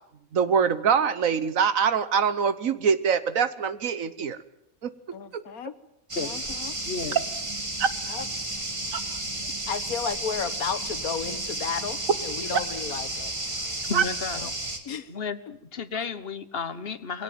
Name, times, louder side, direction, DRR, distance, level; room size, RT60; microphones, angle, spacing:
voice 1, 0.3-4.4 4.8-4.9 5.3-5.4 7.1-7.2 7.8-7.9 8.9-9.2 12.5-12.6 13.9-14.0, right 7 dB, 70° right, 14 dB, 1.5 m, -24 dB
voice 2, 5.1-5.7 6.2-6.8 8.1-8.2 9.7-13.3 14.4-14.5 14.8-15.1, left 7 dB, 90° left, 13 dB, 1.7 m, -33 dB
sound 1, 6.1-14.8, right 1 dB, 20° right, 2.1 m, -32 dB
voice 3, 6.8-7.2 13.8-14.5 15.1-17.2, left 5 dB, 45° left, 13 dB, 1.3 m, -33 dB
22.0 x 17.5 x 9.4 m, 0.77 s
omnidirectional pair, 1.5 m